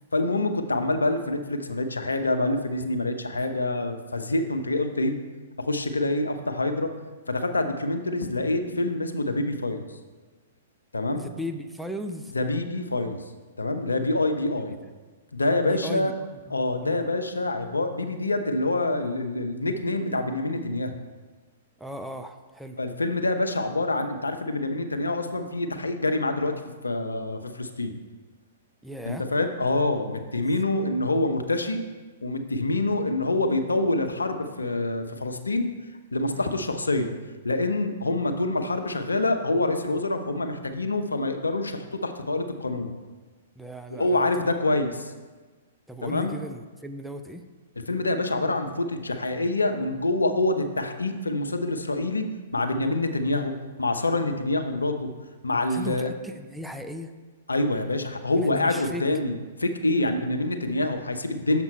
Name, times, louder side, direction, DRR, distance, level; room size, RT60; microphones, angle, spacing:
voice 1, 0.1-5.1 5.6-6.9 7.3-9.8 10.9-11.2 12.3-13.2 13.6-14.8 15.3-16.1 16.5-20.9 22.8-26.5 26.8-27.9 29.0-31.8 32.2-35.7 36.1-37.1 37.4-42.9 44.0-45.1 46.0-46.3 47.9-53.5 53.8-55.1 55.4-56.1 57.5-61.6, left 2 dB, 85° left, 7 dB, 0.7 m, -26 dB
voice 2, 11.1-12.3 15.6-17.1 21.8-22.8 28.8-29.2 36.4-36.7 43.6-44.5 45.9-47.4 55.7-57.1 58.4-59.0, equal, ahead, 6 dB, 0.4 m, -37 dB
6.7 x 5.9 x 4.3 m, 1.3 s
figure-of-eight pair, 115°, 0 cm